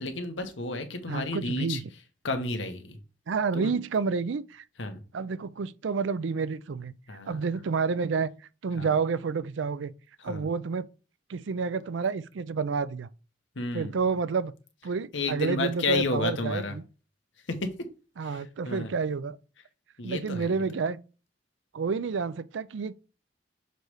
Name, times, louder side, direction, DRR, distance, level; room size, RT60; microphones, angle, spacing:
voice 1, 0.0-1.8 2.2-3.0 3.5-3.7 4.8-5.0 7.1-7.4 8.8-8.9 10.2-10.5 13.5-14.0 15.1-16.8 17.5-17.7 18.2-18.9 20.0-20.6, left 2 dB, 80° left, 1.2 m, -32 dB
voice 2, 1.1-1.8 3.3-4.6 5.1-6.9 7.3-8.3 8.6-9.9 10.2-10.9 11.3-13.1 13.7-14.5 14.8-16.8 18.2-19.4 20.0-21.0 21.7-22.9, right 5 dB, 80° right, 0.4 m, -29 dB
6.7 x 3.2 x 4.8 m
head